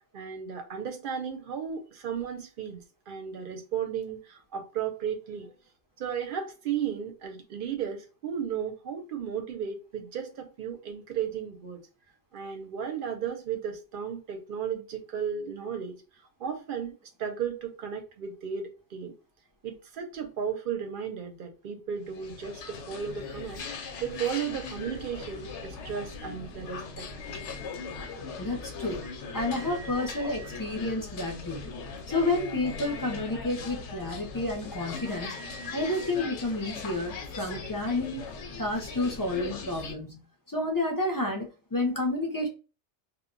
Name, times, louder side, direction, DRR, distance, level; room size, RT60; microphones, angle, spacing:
voice 1, 0.1-2.8 3.1-5.5 6.0-11.8 12.3-16.0 16.4-19.1 19.6-23.6 24.0-27.1, right 7 dB, 60° right, 0.7 m, -34 dB
sound 1, 22.0-39.9, left 4 dB, 90° left, 0.9 m, -40 dB
sound 2, 27.2-28.2 28.9-30.6 31.9-33.2 34.5-36.2, left 1 dB, 5° right, 0.8 m, -47 dB
voice 2, 28.4-29.0 29.3-31.7 32.1-35.4 35.7-38.2 38.6-40.2 40.5-42.5, left 2 dB, 30° left, 0.3 m, -30 dB
2.2 x 2.0 x 3.6 m
omnidirectional pair, 1.2 m